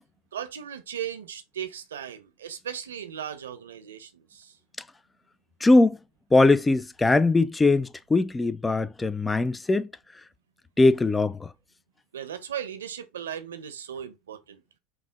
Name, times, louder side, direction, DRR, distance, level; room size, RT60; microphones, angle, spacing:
voice 1, 0.3-4.5 12.1-14.6, right 9 dB, 80° right, 0.8 m, -37 dB
voice 2, 5.6-6.0 6.3-9.9 10.8-11.5, left 2 dB, 15° left, 0.5 m, -21 dB
4.7 x 2.8 x 3.7 m
hypercardioid pair, 80°, 0 cm